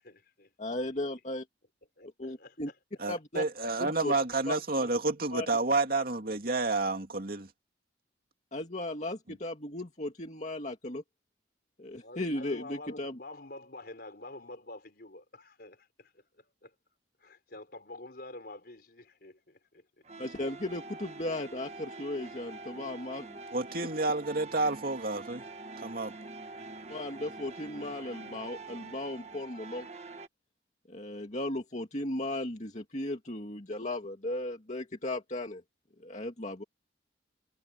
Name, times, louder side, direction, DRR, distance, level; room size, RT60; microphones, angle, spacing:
voice 1, 0.0-0.5 2.0-2.8 12.0-16.7 17.2-19.9, left 2 dB, 55° left, 4.6 m, -48 dB
voice 2, 0.6-1.5 2.2-2.7 3.1-3.4 3.8-4.1 4.5-4.6 5.3-5.5 8.5-11.0 11.8-13.2 20.2-23.4 23.8-23.9 26.9-29.9 30.9-35.6 36.0-36.6, left 1 dB, 40° left, 2.2 m, -36 dB
voice 3, 3.0-7.5 23.5-25.4 25.8-26.1, right 3 dB, 50° right, 2.6 m, -30 dB
sound 1, 20.0-30.3, right 3 dB, 35° right, 1.5 m, -45 dB
head